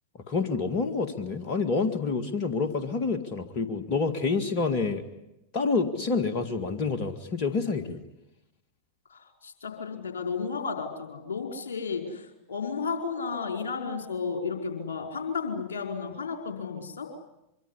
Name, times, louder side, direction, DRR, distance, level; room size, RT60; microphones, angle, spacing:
voice 1, 0.3-5.0 5.5-8.0, left 4 dB, 40° left, 8 dB, 1.9 m, -28 dB
voice 2, 9.1-17.1, left 5 dB, 65° left, 4 dB, 4.7 m, -33 dB
24.0 x 24.0 x 9.9 m, 0.89 s
figure-of-eight pair, 90°, 0 cm